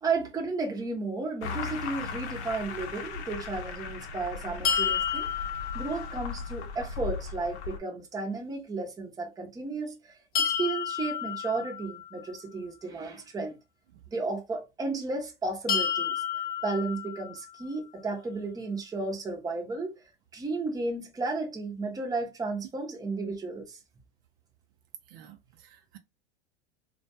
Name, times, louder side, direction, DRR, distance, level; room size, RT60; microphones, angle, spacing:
voice 1, 0.0-5.3 5.7-13.6 14.1-16.2 16.6-19.9 20.3-23.8, right 3 dB, 10° right, 0.6 m, -33 dB
sound 1, 1.4-7.8, left 5 dB, 75° left, 0.7 m, -37 dB
sound 2, 4.6-6.6 10.3-12.4 15.7-17.7, left 8 dB, 30° left, 0.4 m, -31 dB
voice 2, 25.1-26.0, right 11 dB, 60° right, 0.5 m, -52 dB
2.2 x 2.2 x 2.7 m
hypercardioid pair, 100°, 34 cm